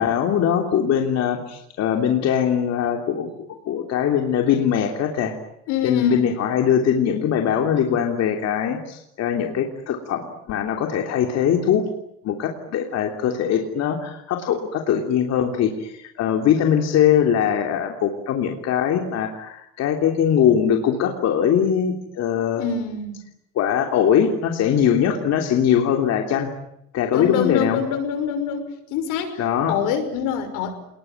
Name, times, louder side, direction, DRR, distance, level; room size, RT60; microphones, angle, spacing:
voice 1, 0.0-5.3 5.8-11.9 12.2-22.6 23.5-26.5 26.9-27.8 29.4-29.7, left 8 dB, 55° left, 3 dB, 3.1 m, -21 dB
voice 2, 5.7-6.3 22.6-23.2 27.1-30.7, left 7 dB, 85° left, 8 dB, 6.1 m, -25 dB
28.5 x 20.5 x 9.1 m, 0.79 s
cardioid pair, 155°, 31 cm